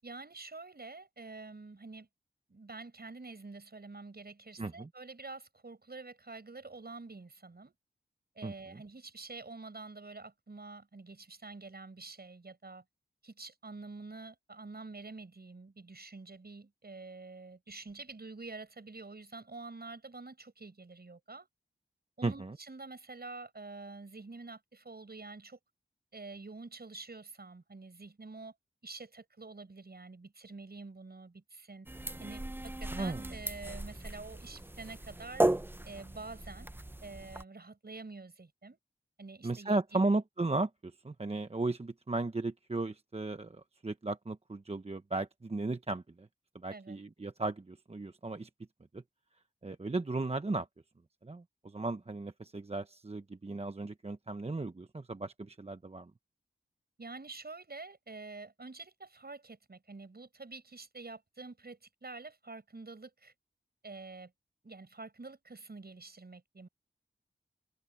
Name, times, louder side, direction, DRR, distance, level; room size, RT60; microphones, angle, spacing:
voice 1, 0.0-2.1 2.5-7.7 8.3-12.8 13.2-21.5 22.2-25.6 26.1-28.5 28.8-31.9 32.2-35.4 35.8-36.7 37.0-38.8 39.2-40.1 46.7-47.0 57.0-63.3 63.8-64.3 64.6-66.7, right 3 dB, 50° right, 6.7 m, -47 dB
voice 2, 4.6-4.9 8.4-8.5 22.2-22.6 32.9-33.2 39.4-46.3 46.5-48.5 48.9-49.0 49.6-50.7 51.2-56.1, right 2 dB, 30° right, 0.9 m, -35 dB
sound 1, 31.9-37.4, right 1 dB, 10° right, 0.6 m, -36 dB
wide cardioid pair, 55°, 20 cm